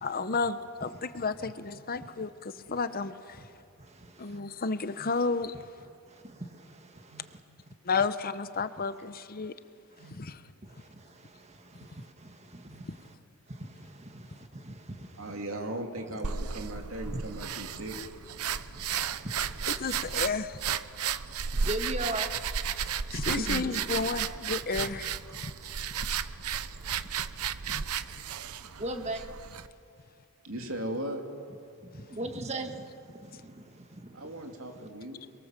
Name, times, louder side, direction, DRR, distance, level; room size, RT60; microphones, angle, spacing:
voice 1, 0.0-3.4 4.2-5.5 7.8-9.5 10.1-10.4 19.8-20.6 23.1-25.1 27.7-27.8, left 4 dB, 40° left, 12 dB, 0.8 m, -32 dB
voice 2, 6.2-6.9 7.3-7.4 11.5-13.0 13.6-15.4 16.0-16.6 17.0-17.8 18.5-20.4 21.3-22.3 24.7-24.9 27.7-27.8 28.8-29.2 32.1-32.8 33.2-34.1, right 1 dB, 30° right, 6 dB, 1.8 m, -40 dB
voice 3, 15.2-18.0 23.3-23.7 28.7-28.8 30.4-31.2 32.0-32.1 34.1-35.2, right 1 dB, 65° right, 3 dB, 2.9 m, -38 dB
sound 1, 16.2-29.7, right 7 dB, 85° right, 0.8 m, -33 dB
29.0 x 22.5 x 7.5 m, 2.4 s
head